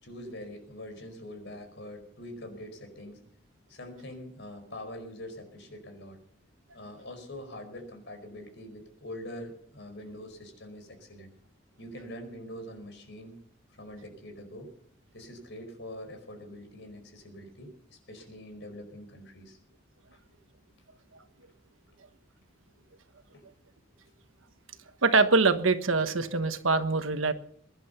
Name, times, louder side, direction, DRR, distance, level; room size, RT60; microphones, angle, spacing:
voice 1, 0.0-3.2 3.7-6.2 6.7-11.3 11.8-13.4 13.8-14.7 15.1-19.6 23.3-23.5, left 1 dB, 60° left, 5 dB, 5.1 m, -44 dB
voice 2, 25.0-27.3, right 3 dB, 80° right, 10 dB, 1.3 m, -24 dB
22.5 x 11.0 x 5.8 m, 0.62 s
head